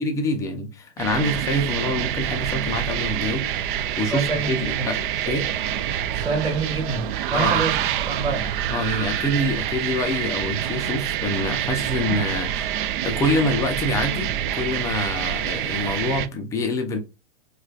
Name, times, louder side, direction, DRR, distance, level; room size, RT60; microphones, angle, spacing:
voice 1, 0.0-5.0 5.3-5.5 7.3-7.6 8.7-17.0, left 1 dB, 10° left, 0.4 m, -26 dB
sound 1, 1.0-16.3, right 10 dB, 55° right, 0.4 m, -26 dB
voice 2, 4.1-4.8 6.1-7.0 7.3-7.7 8.1-8.5, right 3 dB, 15° right, 1.2 m, -26 dB
4.8 x 2.3 x 2.3 m
hypercardioid pair, 140°, 32 cm